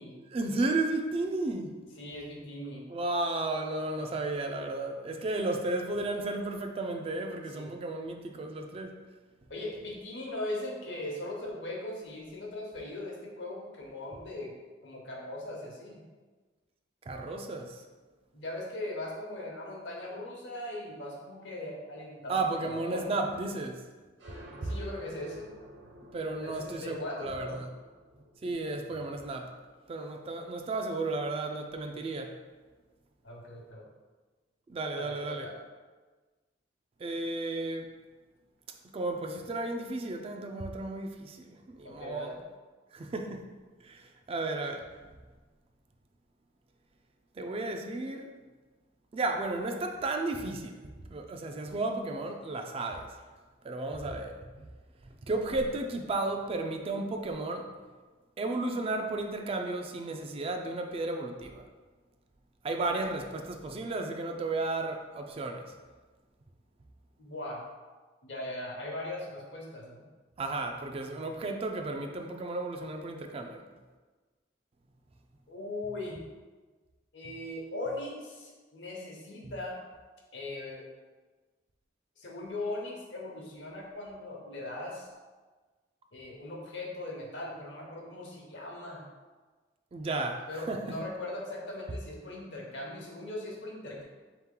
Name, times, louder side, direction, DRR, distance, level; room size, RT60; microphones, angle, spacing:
voice 1, 0.2-1.7 2.9-8.9 17.1-17.8 22.3-23.8 24.6-24.7 26.1-27.7 28.4-29.5 29.9-32.4 34.7-35.5 37.0-37.9 38.9-42.3 42.9-43.5 43.8-44.8 47.4-48.3 49.1-50.8 51.1-53.1 53.6-54.5 55.2-57.7 58.4-61.6 62.6-65.7 70.4-73.6 79.4-79.5 89.9-91.0, right 2 dB, 30° right, 4 dB, 0.3 m, -33 dB
voice 2, 2.0-2.9 7.5-7.7 9.5-14.5 14.8-16.0 18.3-23.3 24.6-25.5 26.4-27.6 33.2-33.8 34.9-35.5 41.8-42.4 67.2-67.6 68.2-70.0 75.5-76.2 77.1-79.8 80.3-80.8 82.2-85.1 86.1-89.0 90.5-94.0, left 1 dB, 70° left, -2 dB, 0.9 m, -39 dB
sound 1, 24.2-31.5, equal, 75° right, 0.8 m, -53 dB
3.7 x 2.9 x 3.7 m, 1.3 s
head